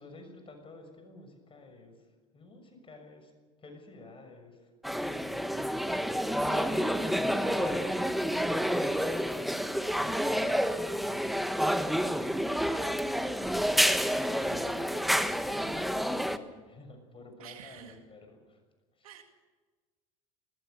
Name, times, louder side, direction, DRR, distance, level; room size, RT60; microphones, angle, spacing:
voice 1, 0.0-3.3 3.6-4.7 6.1-10.6 10.9-11.8 12.6-18.6 19.0-19.1, left 3 dB, 30° left, 6 dB, 6.4 m, -49 dB
sound 1, 4.8-16.4, equal, ahead, 1.4 m, -29 dB
voice 2, 6.4-7.2 17.4-18.0 19.0-19.2, right 9 dB, 90° right, 5 dB, 2.2 m, -48 dB
20.5 x 20.0 x 6.8 m, 1.3 s
hypercardioid pair, 85°, 18 cm